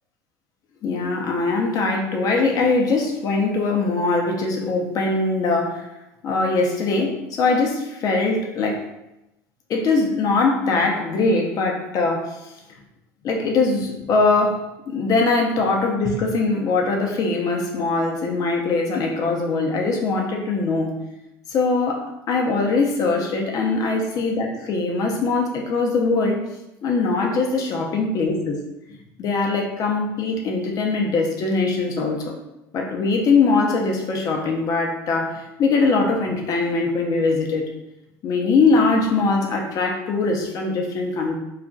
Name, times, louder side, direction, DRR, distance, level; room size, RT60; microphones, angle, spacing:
voice 1, 0.8-5.8 6.2-8.8 9.7-12.3 13.2-20.9 21.5-26.4 26.8-28.6 29.2-32.2 32.7-37.7 38.2-41.4, left 3 dB, 50° left, 1 dB, 0.7 m, -21 dB
2.4 x 2.2 x 3.8 m, 0.93 s
supercardioid pair, 95°, 8 cm